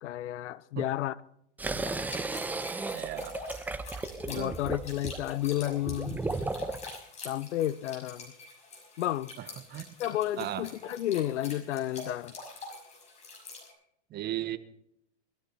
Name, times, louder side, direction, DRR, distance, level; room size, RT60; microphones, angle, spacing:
voice 1, 0.0-1.2 4.3-6.2 7.2-8.3 9.0-9.3 10.0-12.3, left 13 dB, 75° left, 0.8 m, -31 dB
sound 1, 1.6-6.9, right 3 dB, 5° right, 0.5 m, -35 dB
sound 2, 1.7-13.7, left 3 dB, 20° left, 6.0 m, -46 dB
voice 2, 2.9-3.4 4.3-4.5 9.4-9.9 10.4-10.6 14.1-14.6, right 13 dB, 30° right, 1.1 m, -36 dB
20.5 x 13.5 x 4.2 m
hypercardioid pair, 135°, 35 cm